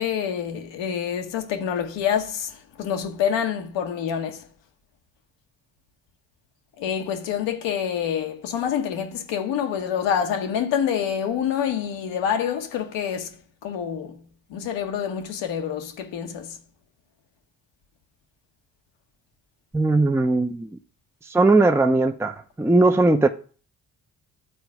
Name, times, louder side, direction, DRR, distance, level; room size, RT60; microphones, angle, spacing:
voice 1, 0.0-4.4 6.8-13.4 13.6-14.2 14.5-16.6, left 8 dB, 80° left, 1.1 m, -27 dB
voice 2, 19.7-20.7 21.3-23.3, right 2 dB, 5° right, 0.7 m, -19 dB
10.5 x 4.0 x 4.7 m
hypercardioid pair, 50°, 44 cm